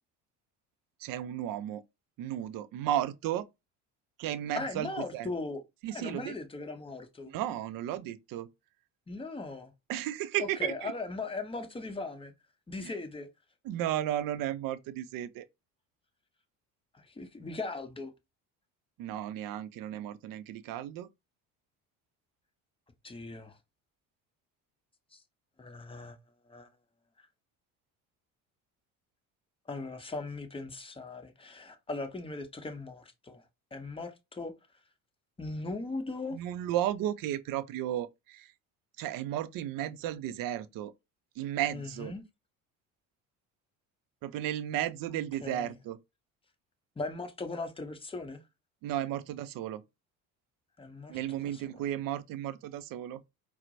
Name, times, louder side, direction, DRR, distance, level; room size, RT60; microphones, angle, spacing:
voice 1, 1.0-1.8 2.2-3.5 4.2-5.3 5.8-6.3 7.2-8.5 9.9-10.9 12.8-13.0 13.6-15.5 19.0-21.1 36.3-38.5 39.0-40.9 41.4-42.1 44.2-46.0 48.8-49.8 51.1-53.2, right 12 dB, 55° right, 0.5 m, -34 dB
voice 2, 4.5-5.6 5.9-7.3 9.1-9.7 10.4-12.3 12.7-13.3 16.9-18.1 23.0-23.6 25.1-25.2 25.6-26.2 26.5-26.7 27.2-27.3 29.7-33.4 33.7-34.5 35.4-36.4 41.7-42.2 45.4-45.8 47.0-48.4 50.8-51.2 51.4-51.8, left 3 dB, 15° left, 0.8 m, -39 dB
4.2 x 2.0 x 2.6 m
hypercardioid pair, 70°, 41 cm